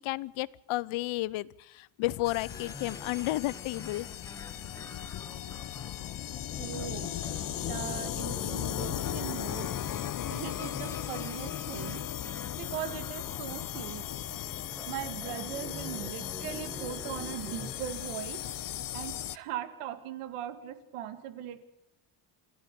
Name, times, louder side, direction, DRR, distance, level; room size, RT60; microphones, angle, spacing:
voice 1, 0.0-4.1, left 18 dB, 70° left, 21 dB, 0.9 m, -32 dB
sound 1, 2.2-19.4, left 12 dB, 40° left, 0.8 m, -37 dB
sound 2, 2.5-17.9, left 2 dB, 5° left, 1.1 m, -47 dB
voice 2, 6.5-7.2 7.7-9.8 10.3-12.0 12.5-14.1 14.9-18.4 18.9-21.6, right 11 dB, 90° right, 12 dB, 2.3 m, -39 dB
28.0 x 12.5 x 8.4 m, 0.89 s
cardioid pair, 135°, 49 cm